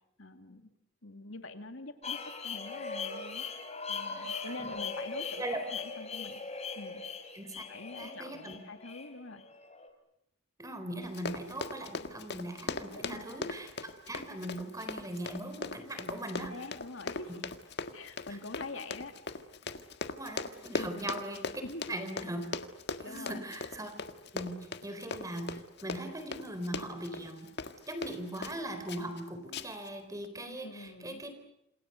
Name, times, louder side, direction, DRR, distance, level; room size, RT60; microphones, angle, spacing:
voice 1, 0.2-0.7 1.0-5.4 5.7-6.4 6.7-7.0 7.5-9.4 12.9-13.5 16.3-17.4 17.9-19.1 20.8-21.1 21.6-21.9 23.0-23.4 30.4-31.2, left 2 dB, 75° left, 7 dB, 2.6 m, -45 dB
sound 1, 2.0-9.9, left 5 dB, 35° left, 3.7 m, -40 dB
voice 2, 8.0-8.6 10.6-13.7 14.1-16.5 20.2-21.6 21.9-22.4 23.0-23.9 24.3-27.5 27.9-31.3, right 1 dB, 15° right, 8 dB, 4.1 m, -40 dB
Run, 11.0-28.6 28.9-29.2 29.5-29.9 30.2-30.3, left 3 dB, 55° left, 1.7 m, -39 dB
29.0 x 27.5 x 6.8 m, 0.81 s
head